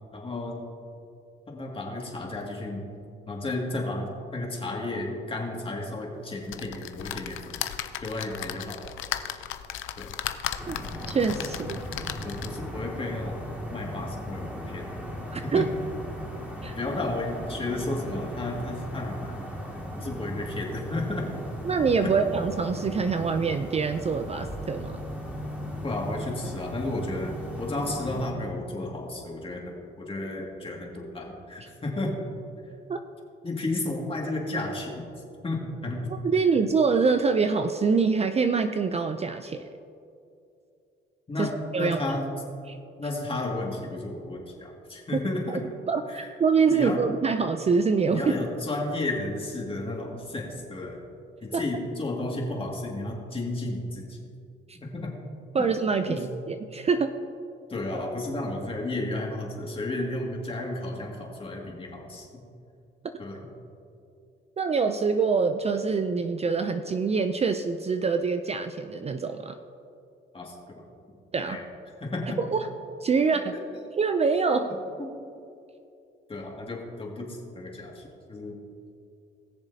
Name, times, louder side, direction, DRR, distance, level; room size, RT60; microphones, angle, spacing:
voice 1, 0.1-0.6 1.5-2.9 3.3-7.5 8.0-8.8 10.0-10.1 12.2-13.4 13.7-14.9 15.4-15.7 16.8-19.4 20.0-21.3 22.0-22.1 25.8-32.1 32.6-32.7 33.4-35.1 35.4-36.1 41.3-42.3 43.0-45.6 46.1-46.3 46.7-47.0 48.1-51.0 51.4-54.2 54.8-55.1 56.1-56.2 57.7-62.4 63.2-63.5 70.3-70.8 71.5-71.7 72.0-72.4 73.5-73.6 75.0-75.2 76.3-78.6, left 2 dB, 25° left, -1 dB, 2.2 m, -33 dB
sound 1, 6.5-12.7 13.3-13.4 13.6-13.7, left 11 dB, 80° left, 0.6 m, -36 dB
sound 2, 10.6-28.3, equal, 10° right, 2.1 m, -37 dB
voice 2, 11.1-11.8 15.3-15.7 16.6-16.8 21.6-25.0 32.9-33.0 36.2-39.7 41.4-41.5 41.7-42.0 42.7-42.8 45.5-45.6 45.9-48.2 51.5-51.6 54.7-54.8 55.5-57.1 64.6-69.6 71.3-71.6 72.4-72.7 73.0-73.5 74.0-74.7, right 5 dB, 30° right, 8 dB, 0.5 m, -25 dB
20.0 x 7.0 x 2.8 m, 2.6 s
cardioid pair, 90°, 20 cm